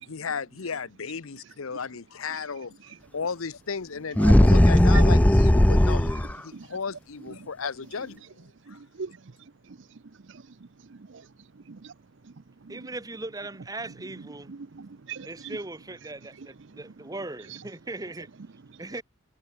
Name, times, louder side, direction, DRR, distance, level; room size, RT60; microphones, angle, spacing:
voice 1, 0.1-2.7 3.1-8.2 8.7-8.8, left 5 dB, 85° left, 0.8 m, -34 dB
sound 1, 4.2-6.4, left 1 dB, 5° left, 0.4 m, -17 dB
voice 2, 4.2-4.5 4.9-5.0 6.0-6.1 6.5-6.8 7.2-7.5 8.6-12.0 12.2-12.9 13.9-15.6 16.3-17.1 17.5-17.6 18.7-18.8, right 5 dB, 60° right, 0.6 m, -43 dB
voice 3, 12.7-14.5 15.2-18.3 18.8-19.0, right 2 dB, 15° right, 1.0 m, -38 dB
head